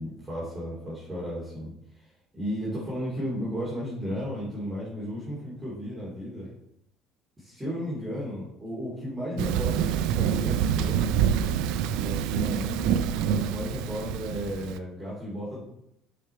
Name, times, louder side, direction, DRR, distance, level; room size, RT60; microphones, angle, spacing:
voice 1, 0.0-2.1 2.3-6.5 7.4-11.0 11.9-13.0 13.2-15.6, equal, 15° right, -8 dB, 2.6 m, -34 dB
Thunder, 9.4-14.8, right 9 dB, 75° right, 0.4 m, -26 dB
5.7 x 5.0 x 4.4 m, 0.79 s
supercardioid pair, 95°, 0 cm